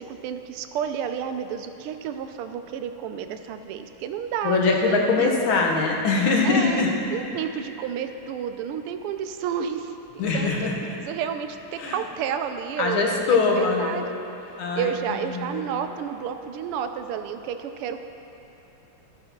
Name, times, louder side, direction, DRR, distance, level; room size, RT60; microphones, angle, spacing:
voice 1, 0.0-5.3 6.4-10.0 10.3-10.5 11.0-14.1 14.8-18.1, right 8 dB, 85° right, 8 dB, 1.5 m, -31 dB
voice 2, 4.4-6.9 10.2-10.7 11.8-12.0 12.8-14.0 14.6-15.6, left 4 dB, 70° left, 0 dB, 1.8 m, -22 dB
14.0 x 5.4 x 5.8 m, 3.0 s
omnidirectional pair, 2.4 m